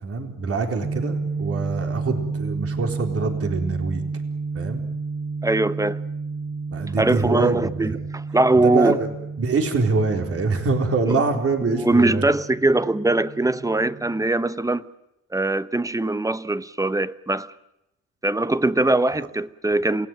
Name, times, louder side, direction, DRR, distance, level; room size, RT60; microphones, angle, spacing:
voice 1, 0.0-4.0 4.5-4.8 6.7-8.0 8.6-12.3, right 4 dB, 50° right, 4.1 m, -25 dB
sound 1, 0.8-14.3, right 4 dB, 30° right, 1.2 m, -31 dB
voice 2, 5.4-6.0 7.0-9.0 11.1-11.2 11.6-14.9 15.3-17.5 18.2-20.1, right 2 dB, 10° right, 1.0 m, -21 dB
28.0 x 18.0 x 9.2 m
cardioid pair, 90°, 30 cm